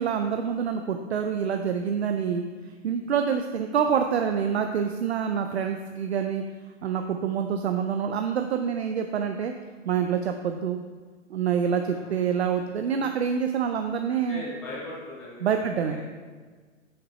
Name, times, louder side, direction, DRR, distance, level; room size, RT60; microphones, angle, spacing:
voice 1, 0.0-2.4 2.8-6.4 6.8-9.5 9.9-10.8 11.3-14.4 15.4-16.0, right 7 dB, 55° right, 5 dB, 0.5 m, -26 dB
voice 2, 11.9-12.4 13.0-13.1 14.3-15.5 15.8-16.1, left 2 dB, ahead, -10 dB, 0.7 m, -40 dB
6.3 x 5.9 x 4.1 m, 1.5 s
hypercardioid pair, 170°, 39 cm